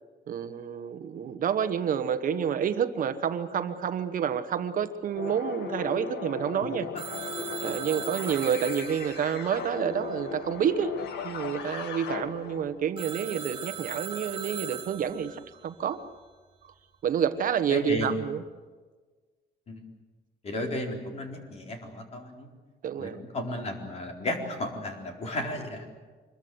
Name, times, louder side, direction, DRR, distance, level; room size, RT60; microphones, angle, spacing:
voice 1, 0.3-6.9 7.6-10.9 11.2-16.1 16.6-16.7 17.0-18.4 22.8-23.2, right 8 dB, 50° right, 10 dB, 1.2 m, -29 dB
sound 1, 5.2-12.8, left 6 dB, 80° left, 2.2 m, -37 dB
Telephone, 7.0-10.6 13.0-15.5, right 7 dB, 30° right, 4.8 m, -40 dB
voice 2, 17.7-18.2 19.7-19.8 20.4-22.5 23.0-25.9, left 1 dB, 40° left, 2 dB, 4.3 m, -34 dB
25.5 x 22.0 x 8.0 m, 1.4 s
cardioid pair, 170°, 17 cm